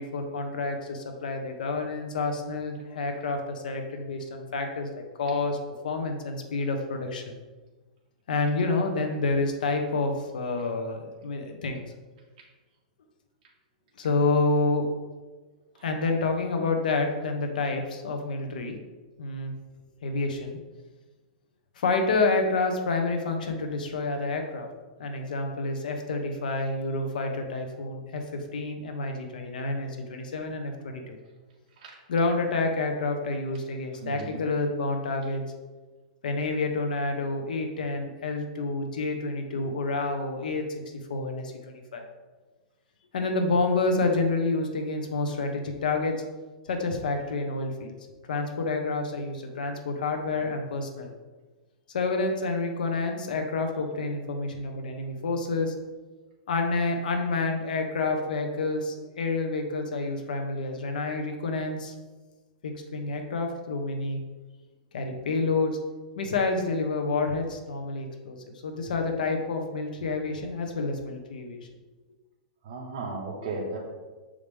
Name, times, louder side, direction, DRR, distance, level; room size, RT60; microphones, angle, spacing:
voice 1, 0.0-5.6 5.8-7.3 8.3-11.8 14.0-14.9 15.8-18.8 19.2-19.5 20.0-20.6 21.8-24.7 25.0-31.2 32.1-35.4 36.2-40.6 41.1-42.1 43.1-46.1 46.7-47.9 48.3-51.1 51.9-55.7 56.5-61.9 62.6-64.2 64.9-65.8 66.2-68.4 68.6-71.6, left 3 dB, 85° left, 4 dB, 1.2 m, -28 dB
voice 2, 34.0-34.4 72.6-73.8, right 3 dB, 45° right, -5 dB, 1.6 m, -35 dB
6.7 x 5.1 x 3.5 m, 1.3 s
hypercardioid pair, 160°, 4 cm